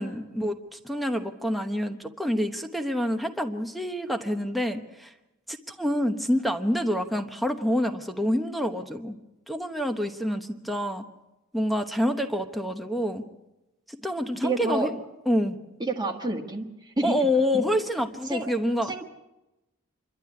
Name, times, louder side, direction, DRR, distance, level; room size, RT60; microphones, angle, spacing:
voice 1, 0.0-5.1 5.5-9.2 9.5-11.0 11.5-13.2 13.9-14.9 15.3-15.6 17.0-19.0, equal, ahead, 6 dB, 1.0 m, -27 dB
voice 2, 14.4-14.9 15.8-17.3 18.2-18.5 18.8-19.0, right 2 dB, 20° right, 3 dB, 1.5 m, -29 dB
26.5 x 12.0 x 9.6 m, 1.0 s
head